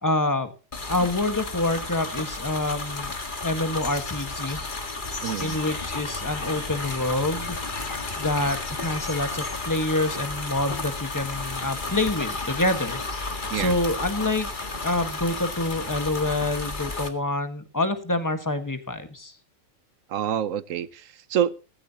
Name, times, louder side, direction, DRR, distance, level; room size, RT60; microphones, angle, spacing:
voice 1, 0.0-0.5 0.9-3.1 3.4-4.6 5.4-7.6 8.2-13.0 13.3-14.5 14.8-19.3, left 2 dB, 15° left, 8 dB, 1.6 m, -27 dB
sound 1, 0.7-17.1, left 3 dB, 40° left, 1.9 m, -32 dB
voice 2, 5.2-5.6 13.5-13.8 20.1-21.5, right 9 dB, 80° right, 17 dB, 1.2 m, -27 dB
17.5 x 15.0 x 3.0 m, 0.35 s
omnidirectional pair, 1.3 m